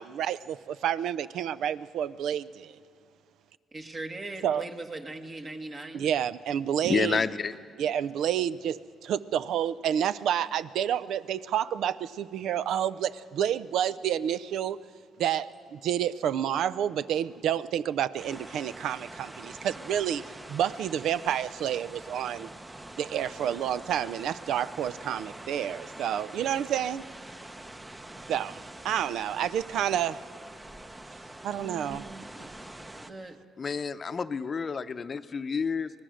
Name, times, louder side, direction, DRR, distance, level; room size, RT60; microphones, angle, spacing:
voice 1, 0.0-2.8 4.4-4.7 5.9-7.2 7.8-14.8 15.2-20.2 20.5-22.5 23.0-27.0 28.3-30.2 31.4-32.0, right 10 dB, 80° right, 16 dB, 0.5 m, -29 dB
voice 2, 3.7-6.1 31.5-32.5 33.0-33.4, right 2 dB, 35° right, 4 dB, 1.6 m, -40 dB
voice 3, 6.9-7.5 33.6-35.9, left 5 dB, 40° left, 10 dB, 0.7 m, -29 dB
sound 1, 18.2-33.1, right 1 dB, 15° right, 0.8 m, -45 dB
24.5 x 19.0 x 6.4 m, 2.3 s
cardioid pair, 90°, 0 cm